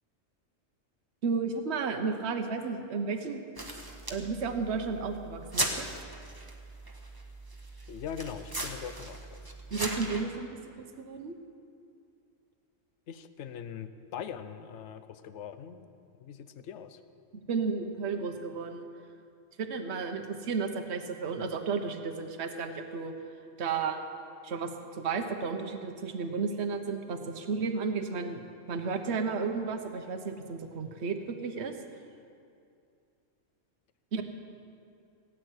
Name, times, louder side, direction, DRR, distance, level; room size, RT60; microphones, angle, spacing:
voice 1, 1.2-3.4 4.1-6.0 9.7-10.5 10.8-11.3 17.5-18.8 19.6-23.1 23.6-24.0 24.4-31.7 34.1-34.2, right 5 dB, 65° right, 6 dB, 1.2 m, -33 dB
sound 1, 3.6-10.2, right 2 dB, 20° right, 1.2 m, -38 dB
voice 2, 7.9-9.2 9.7-9.8 13.1-15.9 16.2-17.0, left 8 dB, 70° left, 11 dB, 1.0 m, -41 dB
17.5 x 9.2 x 8.0 m, 2.4 s
omnidirectional pair, 1.2 m